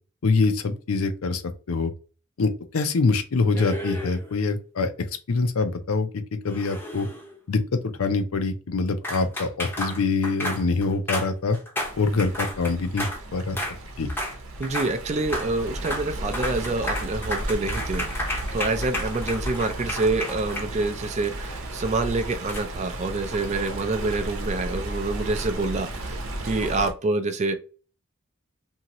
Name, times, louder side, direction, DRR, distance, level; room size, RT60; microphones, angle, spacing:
voice 1, 0.2-1.4 1.7-1.9 2.4-4.9 5.3-7.1 7.5-11.6 12.0-13.6 14.0-14.1, left 3 dB, 80° left, 0.5 m, -24 dB
sound 1, 3.5-4.4 6.4-7.4 9.0-13.2 13.6-13.8 14.1-14.4 14.6-14.9 15.2-15.5 15.8-16.1 16.3-21.1 22.5-22.6, left 1 dB, 10° left, 0.6 m, -32 dB
Stream, 11.8-26.9, right 1 dB, 70° right, 0.8 m, -34 dB
voice 2, 14.6-18.1 18.5-27.5, right 3 dB, 30° right, 0.4 m, -27 dB
2.8 x 2.7 x 2.9 m
head